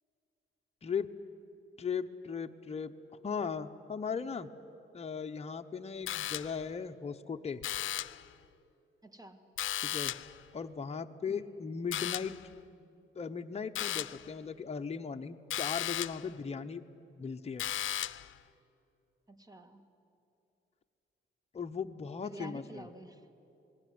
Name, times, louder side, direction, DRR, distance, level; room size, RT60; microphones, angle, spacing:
voice 1, 1.8-2.9 3.2-4.5 4.9-7.6 9.7-10.2 10.5-12.3 13.1-16.8 17.2-17.7 21.5-22.9, left 6 dB, 30° left, 5 dB, 0.9 m, -37 dB
sound 1, 6.1-6.7 7.6-8.3 9.6-10.4 11.9-12.5 13.8-14.3 15.5-16.3 17.6-18.3, left 12 dB, 75° left, 0.6 m, -36 dB
voice 2, 9.0-9.4 11.3-11.6 19.3-19.8 22.2-23.2, right 1 dB, 20° right, 8 dB, 2.0 m, -49 dB
27.0 x 20.0 x 9.5 m, 2.7 s
cardioid pair, 95°, 20 cm